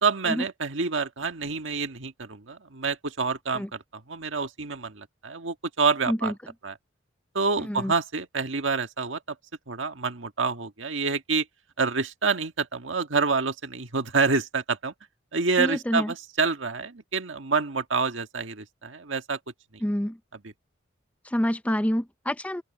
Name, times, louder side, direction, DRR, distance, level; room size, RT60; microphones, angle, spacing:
voice 1, 0.0-6.3 6.6-6.7 7.3-9.2 9.7-11.4 11.8-14.9 15.3-19.4, right 4 dB, 75° right, 1.6 m, -27 dB
voice 2, 7.6-7.9 15.6-16.1 19.8-20.2 21.2-22.6, equal, 5° left, 0.5 m, -27 dB
open air
head